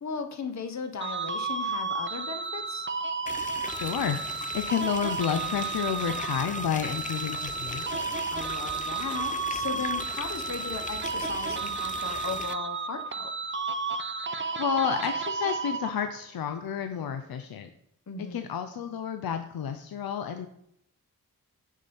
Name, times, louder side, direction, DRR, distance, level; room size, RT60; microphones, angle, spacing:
voice 1, 0.0-2.9 8.3-13.3 18.1-18.4, left 5 dB, 50° left, 7 dB, 0.9 m, -37 dB
sound 1, 1.0-16.2, right 4 dB, 35° right, 0.6 m, -32 dB
sound 2, 3.3-12.5, left 4 dB, 25° left, 0.4 m, -40 dB
voice 2, 3.7-8.2 14.3-17.7 18.3-20.5, left 8 dB, 80° left, 7 dB, 0.6 m, -31 dB
6.4 x 5.5 x 3.5 m, 0.75 s
cardioid pair, 45°, 36 cm